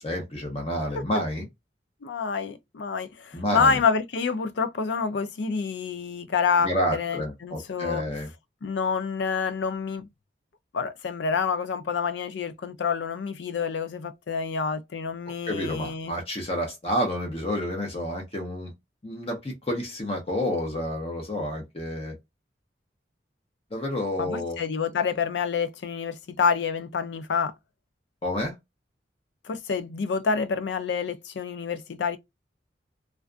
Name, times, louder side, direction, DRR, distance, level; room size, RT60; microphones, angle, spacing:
voice 1, 0.0-1.5 3.3-3.8 6.6-8.3 15.5-18.7 19.0-22.2 23.7-24.6 28.2-28.5, equal, 35° left, 0.7 m, -29 dB
voice 2, 2.0-8.0 8.6-10.1 10.7-16.1 24.2-27.5 29.4-32.2, left 5 dB, 75° left, 0.4 m, -27 dB
2.4 x 2.2 x 2.4 m
head